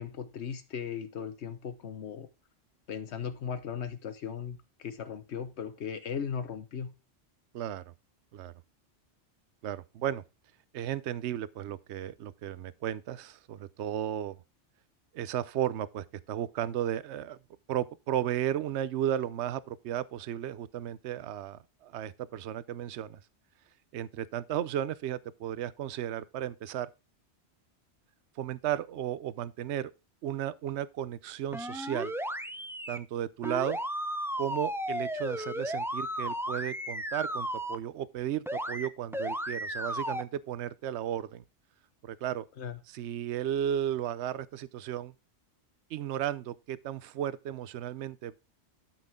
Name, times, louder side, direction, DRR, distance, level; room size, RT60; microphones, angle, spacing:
voice 1, 0.0-2.3 2.9-6.9 42.6-42.8, left 7 dB, 70° left, 1.3 m, -37 dB
voice 2, 7.5-7.9 8.3-8.5 9.6-10.2 10.7-14.4 15.1-17.4 17.7-23.2 23.9-26.9 28.4-29.9 30.2-32.1 32.9-33.8 34.4-41.4 42.0-42.4 42.9-45.1 45.9-48.4, right 11 dB, 75° right, 0.9 m, -34 dB
sound 1, 31.5-33.0 33.4-37.8 38.5-38.9 39.1-40.2, equal, 5° right, 0.6 m, -34 dB
12.0 x 6.1 x 3.5 m
omnidirectional pair, 1.2 m